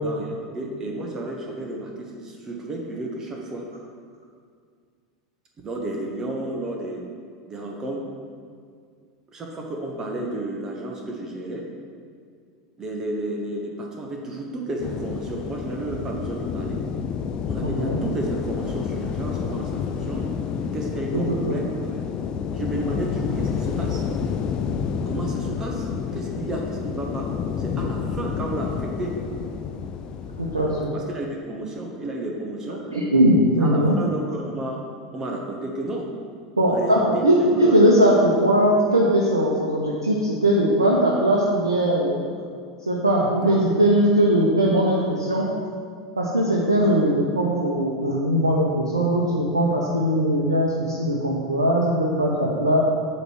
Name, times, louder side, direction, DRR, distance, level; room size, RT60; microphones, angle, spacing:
voice 1, 0.0-3.7 5.6-7.1 7.5-8.0 9.3-11.7 12.8-16.8 17.5-20.4 20.7-22.0 22.5-24.0 25.1-27.3 27.6-29.2 30.9-33.0 33.6-34.8 35.1-36.1 36.7-37.2 37.6-37.8 43.4-43.6, right 1 dB, 25° right, 0 dB, 1.0 m, -32 dB
sound 1, 14.8-30.9, left 6 dB, 40° left, 0.4 m, -29 dB
voice 2, 17.6-18.0 21.1-21.6 30.4-30.9 32.9-34.0 36.6-42.2 42.9-45.5 46.2-52.8, right 1 dB, 85° right, -3 dB, 0.7 m, -20 dB
7.9 x 3.2 x 6.1 m, 2.1 s
figure-of-eight pair, 80°, 2 cm